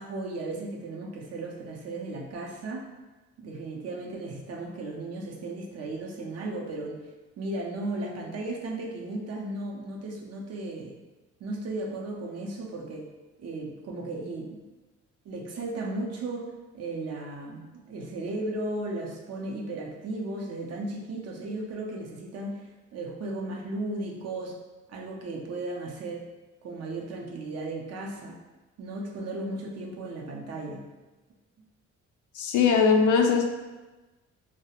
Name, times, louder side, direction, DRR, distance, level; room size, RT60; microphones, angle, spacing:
voice 1, 0.0-2.9 3.4-7.0 7.4-11.0 11.4-13.1 13.4-14.6 15.2-24.6 24.9-26.3 26.6-28.4 28.8-30.9, right 2 dB, 55° right, 0 dB, 0.5 m, -35 dB
voice 2, 32.3-33.5, left 5 dB, 75° left, 3 dB, 0.4 m, -21 dB
2.3 x 2.0 x 2.8 m, 1.2 s
cardioid pair, 90°, 30 cm